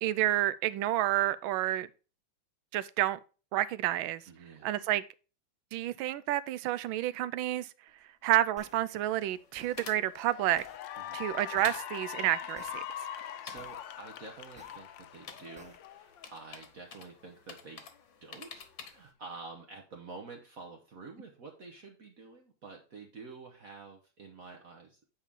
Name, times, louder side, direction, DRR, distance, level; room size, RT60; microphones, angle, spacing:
voice 1, 0.0-1.9 2.7-3.2 3.5-4.2 4.6-5.0 5.7-7.7 8.2-10.6 11.1-12.8, right 14 dB, 90° right, 1.4 m, -29 dB
voice 2, 4.3-4.7 11.0-11.2 13.1-17.9 18.2-25.0, right 4 dB, 50° right, 1.3 m, -49 dB
sound 1, 8.6-8.8 9.6-9.8 10.6-10.8 11.6-11.8 12.6-12.8 13.6-13.8 14.6-14.8 15.6-15.8, equal, 5° right, 0.7 m, -54 dB
sound 2, 8.7-19.1, left 5 dB, 50° left, 1.4 m, -52 dB
Cheering / Applause, 9.3-9.6 10.0-16.6, left 10 dB, 75° left, 1.3 m, -42 dB
8.4 x 4.9 x 3.5 m
omnidirectional pair, 2.1 m